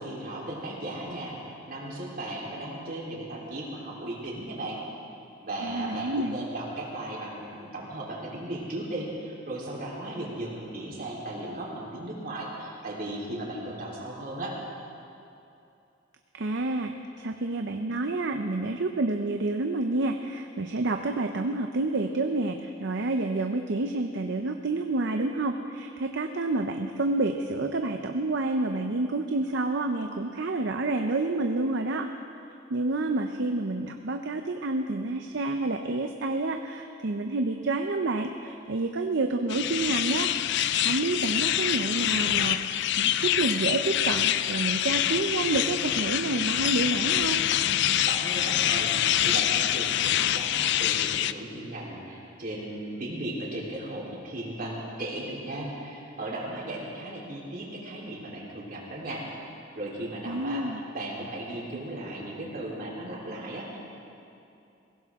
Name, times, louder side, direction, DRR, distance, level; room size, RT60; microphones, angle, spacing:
voice 1, 0.0-4.8 5.4-14.5 48.0-59.2 59.8-60.6 60.9-63.8, right 1 dB, 50° right, -4 dB, 3.7 m, -36 dB
voice 2, 5.6-6.5 16.3-32.1 32.7-40.3 40.8-47.4 60.3-60.8, right 2 dB, 65° right, 5 dB, 0.7 m, -29 dB
sound 1, 39.5-51.3, left 11 dB, 60° left, 0.4 m, -26 dB
21.5 x 17.0 x 3.6 m, 2.7 s
head